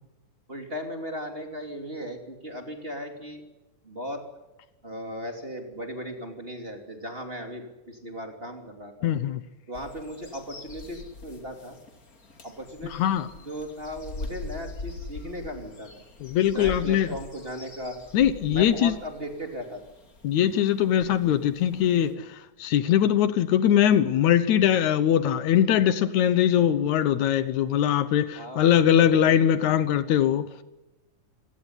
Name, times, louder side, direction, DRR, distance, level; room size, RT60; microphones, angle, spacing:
voice 1, 0.5-3.4 3.8-4.2 4.8-9.1 9.7-11.8 12.4-15.9 16.5-18.0 18.5-19.8 28.4-29.6, equal, 20° right, 3.0 m, -37 dB
voice 2, 9.0-9.4 12.9-13.3 16.2-17.1 18.1-18.9 20.2-30.5, left 10 dB, 75° left, 2.4 m, -22 dB
sound 1, 9.7-22.1, left 2 dB, 30° left, 2.7 m, -43 dB
27.0 x 17.5 x 9.8 m
omnidirectional pair, 3.4 m